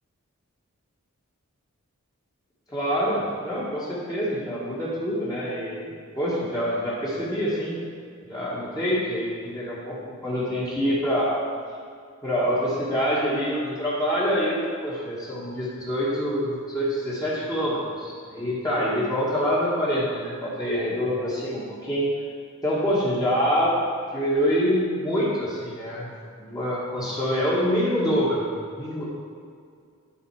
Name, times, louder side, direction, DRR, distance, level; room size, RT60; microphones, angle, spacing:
voice 1, 2.7-7.8 8.2-10.0 10.2-11.3 12.2-22.1 22.6-23.7 24.1-26.1 26.4-29.1, equal, 15° left, -8 dB, 1.5 m, -26 dB
11.5 x 3.8 x 4.8 m, 2.2 s
head